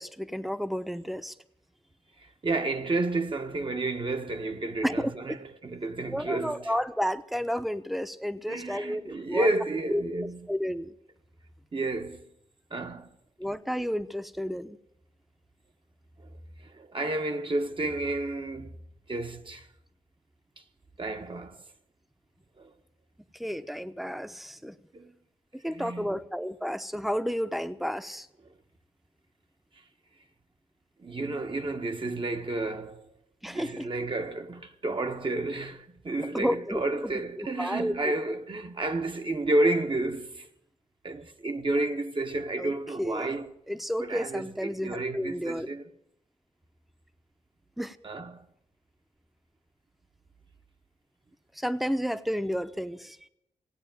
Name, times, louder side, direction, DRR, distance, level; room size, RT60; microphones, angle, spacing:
voice 1, 0.0-1.3 4.8-5.1 6.1-9.5 9.9-10.0 10.5-10.9 13.4-14.8 23.3-24.8 25.5-28.3 33.4-33.9 36.3-37.1 37.4-37.9 42.6-42.7 43.0-43.3 43.7-45.7 47.8-48.0 51.5-53.2, equal, ahead, 0.9 m, -31 dB
voice 2, 2.2-6.7 8.5-10.5 11.7-12.3 12.7-13.2 16.2-16.3 16.6-18.8 19.1-19.7 21.0-21.6 22.6-22.7 24.9-25.1 25.7-26.2 31.0-33.1 33.4-40.5 41.0-43.5 44.0-45.8 48.0-48.5, right 2 dB, 40° right, 1.3 m, -31 dB
17.0 x 8.4 x 9.1 m
cardioid pair, 65°, 13 cm